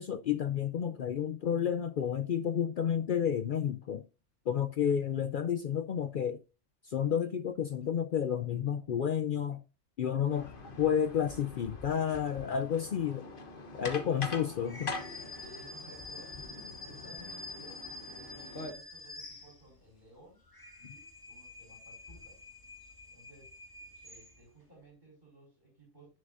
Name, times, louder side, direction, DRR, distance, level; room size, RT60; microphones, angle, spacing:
voice 1, 0.0-4.0 4.5-6.4 6.8-9.6 10.0-10.4 10.8-13.3 13.7-14.9, left 8 dB, 65° left, 0.5 m, -31 dB
voice 2, 10.2-11.0 13.6-14.7 15.4-16.4 16.8-20.4 20.8-22.4 23.1-23.5 24.0-26.2, equal, 35° right, 4.5 m, -57 dB
sound 1, 10.3-18.7, left 2 dB, 45° left, 1.3 m, -44 dB
sound 2, 14.6-19.9 20.4-24.6, left 2 dB, 15° left, 1.9 m, -48 dB
11.0 x 6.7 x 2.6 m
omnidirectional pair, 1.4 m